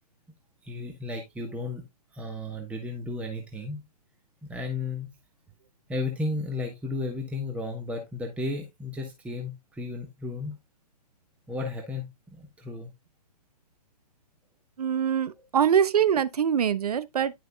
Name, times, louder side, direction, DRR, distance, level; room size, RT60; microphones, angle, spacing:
voice 1, 0.6-1.8 2.1-3.8 4.4-5.1 5.9-10.6 11.5-12.9, left 2 dB, 5° right, 1.2 m, -34 dB
voice 2, 14.8-17.3, right 8 dB, 65° right, 0.9 m, -24 dB
10.5 x 6.3 x 2.3 m
hypercardioid pair, 130°, 21 cm